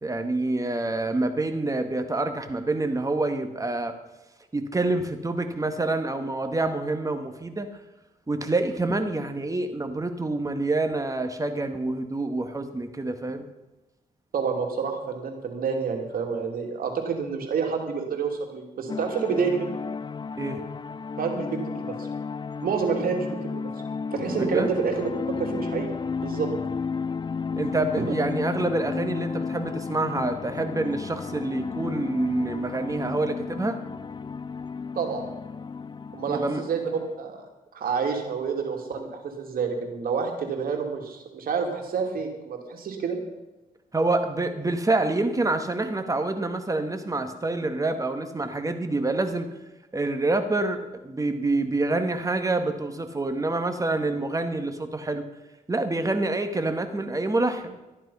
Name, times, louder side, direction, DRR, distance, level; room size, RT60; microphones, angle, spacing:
voice 1, 0.0-3.9 4.5-7.7 8.3-13.5 20.4-20.6 24.3-24.7 27.6-33.8 36.3-36.6 43.9-49.5 49.9-55.3 55.7-57.7, right 2 dB, 25° right, 7 dB, 1.9 m, -27 dB
voice 2, 14.3-19.8 21.2-22.1 22.6-23.7 24.1-25.1 25.4-25.9 26.2-26.5 28.0-28.1 35.0-35.2 36.1-36.9 37.2-37.4 37.7-43.2, right 5 dB, 80° right, 3 dB, 2.7 m, -28 dB
sound 1, 18.9-37.2, left 5 dB, 30° left, 0.5 m, -33 dB
13.5 x 11.0 x 5.7 m, 1.1 s
cardioid pair, 75°, 15 cm